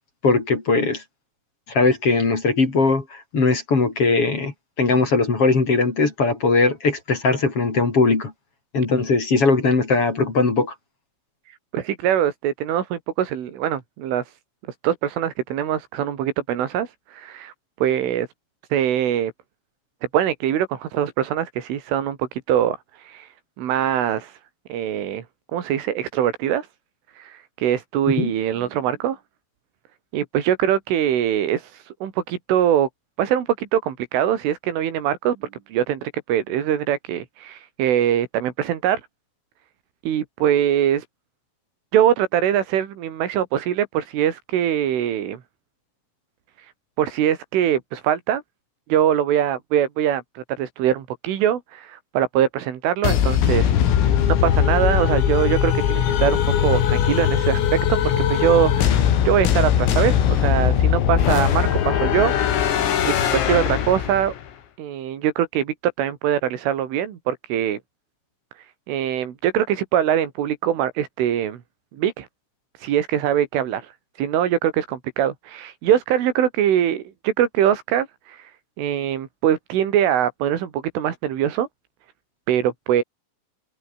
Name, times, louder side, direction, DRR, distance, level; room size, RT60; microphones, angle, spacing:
voice 1, 0.2-1.0 1.7-8.3 8.7-10.7 28.2-28.3, left 3 dB, 30° left, 4.2 m, -20 dB
voice 2, 11.5-14.3 14.8-17.5 17.8-18.3 18.7-19.3 20.1-23.3 23.6-24.4 24.7-25.2 25.5-26.7 27.2-29.2 30.1-32.9 33.2-39.0 40.0-41.1 41.9-45.4 46.6-46.7 47.0-48.4 48.9-57.6 57.9-62.4 62.7-64.3 64.8-67.8 68.9-71.6 71.9-72.3 72.8-73.9 74.2-78.5 78.8-81.7 82.5-83.0, right 10 dB, 75° right, 5.1 m, -23 dB
sound 1, 53.0-64.4, left 9 dB, 85° left, 5.9 m, -20 dB
omnidirectional pair, 5.9 m